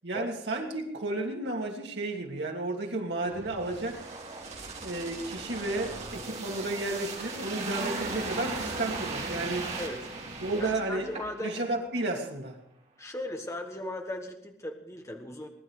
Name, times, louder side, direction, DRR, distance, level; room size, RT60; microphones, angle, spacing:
voice 1, 0.0-4.0 4.8-9.7 10.4-11.1 11.4-12.6, right 2 dB, 70° right, 0 dB, 2.8 m, -32 dB
sound 1, 3.3-11.6 11.9-12.1, right 3 dB, 40° right, 3.0 m, -37 dB
voice 2, 9.8-10.1 10.5-11.7 13.0-15.5, left 1 dB, 15° left, 4 dB, 1.5 m, -37 dB
20.5 x 11.5 x 5.0 m, 0.77 s
head